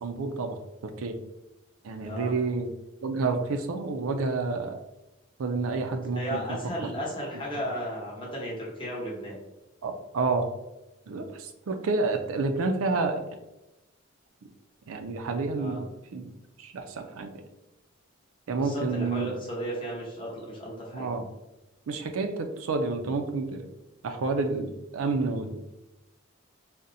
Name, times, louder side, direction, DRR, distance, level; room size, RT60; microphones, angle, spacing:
voice 1, 0.0-1.2 1.8-2.7 3.0-4.8 5.4-6.6 7.5-7.7 9.8-10.5 11.1-13.2 14.9-16.3 16.6-17.3 18.5-19.3 20.9-21.2 21.9-23.7 24.0-25.6, right 3 dB, 85° right, 6 dB, 0.4 m, -29 dB
voice 2, 6.1-9.4 15.5-15.8 18.6-21.1, equal, 25° left, -4 dB, 0.9 m, -34 dB
4.0 x 2.1 x 2.5 m, 0.96 s
head